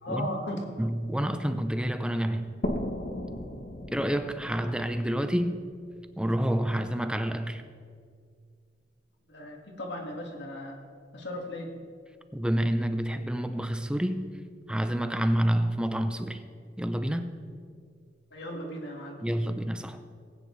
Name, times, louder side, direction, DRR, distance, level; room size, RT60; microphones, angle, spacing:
voice 1, 0.0-0.7 9.3-10.8 11.1-11.7 18.3-19.2, left 1 dB, 75° left, 1 dB, 1.9 m, -36 dB
voice 2, 0.8-2.6 3.9-5.6 6.2-7.6 12.3-14.3 14.7-16.4 16.8-17.3 19.2-20.0, equal, 5° right, 9 dB, 0.5 m, -28 dB
sound 1, 2.6-6.1, left 1 dB, 50° left, 1.0 m, -36 dB
19.5 x 9.3 x 3.2 m, 2.1 s
head